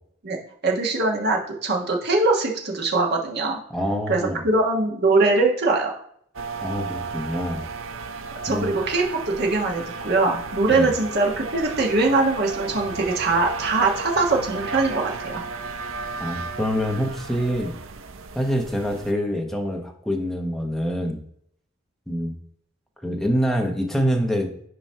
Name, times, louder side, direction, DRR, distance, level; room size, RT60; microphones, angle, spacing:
voice 1, 0.6-3.6 4.1-4.2 4.4-5.9 8.4-15.4, right 3 dB, 55° right, 0 dB, 1.4 m, -22 dB
voice 2, 3.7-4.4 6.6-7.7 8.5-8.8 10.7-10.9 16.2-17.7 18.3-21.2 22.1-22.3 23.0-24.5, equal, ahead, 2 dB, 0.9 m, -25 dB
sound 1, 6.3-19.1, right 4 dB, 75° right, 0.6 m, -34 dB
8.8 x 3.0 x 5.6 m, 0.67 s
head